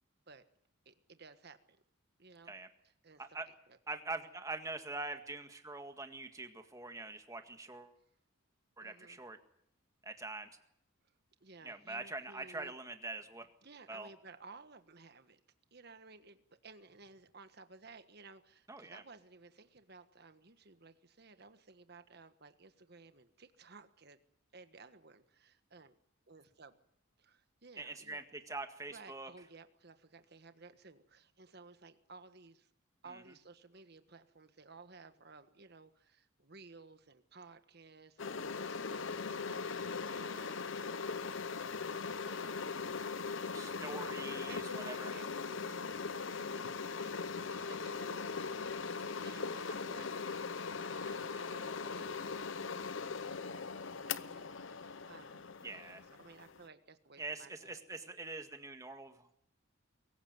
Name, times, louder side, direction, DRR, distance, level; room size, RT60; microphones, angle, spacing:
voice 1, 0.8-1.8 2.2-2.5 3.0-3.2 3.7-3.8 8.8-9.2 11.4-12.7 13.6-15.4 15.7-24.2 24.5-25.9 26.3-26.8 27.2-28.2 28.9-32.7 33.0-40.7 42.1-43.5 44.5-46.7 47.0-50.3 51.0-52.3 53.2-53.7 54.0-57.8, right 3 dB, 50° right, 10 dB, 1.5 m, -57 dB
voice 2, 3.9-7.9 8.8-9.4 10.0-10.5 11.6-13.5 13.9-14.1 18.7-19.0 27.8-29.3 33.1-33.2 43.5-45.1 55.6-56.0 57.2-59.3, right 3 dB, 15° right, 6 dB, 1.8 m, -44 dB
sound 1, 38.2-56.7, left 5 dB, 65° left, 0.8 m, -40 dB
23.0 x 15.5 x 9.4 m, 0.73 s
head